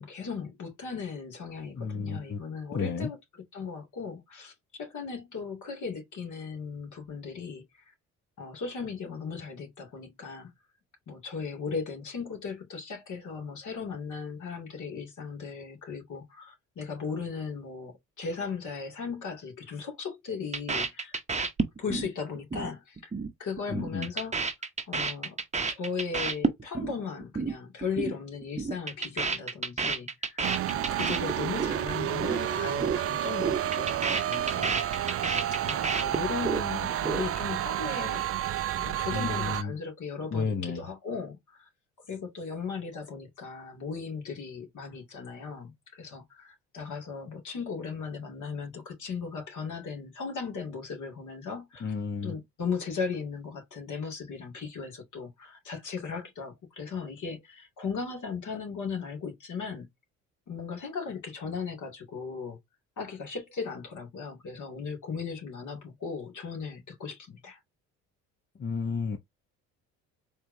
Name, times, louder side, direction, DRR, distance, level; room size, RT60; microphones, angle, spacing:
voice 1, 0.0-3.2 3.5-4.5 4.8-7.6 8.4-10.5 11.1-21.2 21.8-23.1 23.4-24.4 24.9-25.4 25.7-30.4 30.7-34.8 35.6-38.2 38.8-41.7 42.1-51.9 52.2-59.9 60.5-62.6 63.0-67.6, left 5 dB, 50° left, 2.3 m, -37 dB
voice 2, 1.7-2.4 2.7-3.1 23.7-24.1 39.1-39.7 40.3-40.8 51.8-52.4 68.6-69.2, left 5 dB, 30° left, 0.7 m, -32 dB
sound 1, 20.5-22.1 22.4-22.7 23.0-23.3 23.6-26.9 27.2-27.5 27.8-28.1 28.4-31.8 32.1-32.4 32.7-33.0 33.3-36.6 36.9-37.5, right 4 dB, 20° right, 0.9 m, -30 dB
sound 2, 30.4-39.6, right 11 dB, 40° right, 0.4 m, -30 dB
4.2 x 3.4 x 2.6 m
hypercardioid pair, 60°, 38 cm